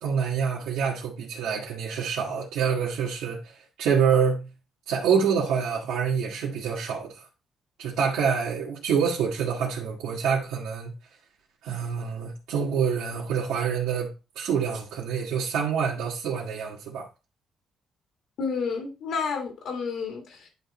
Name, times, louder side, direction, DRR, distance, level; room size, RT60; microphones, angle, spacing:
voice 1, 0.0-4.5 4.9-7.2 7.8-10.9 11.6-14.1 14.4-17.1, right 7 dB, 90° right, 2.0 m, -26 dB
voice 2, 18.4-20.5, left 5 dB, 75° left, 2.2 m, -30 dB
10.5 x 3.7 x 4.3 m
cardioid pair, 120°, 0 cm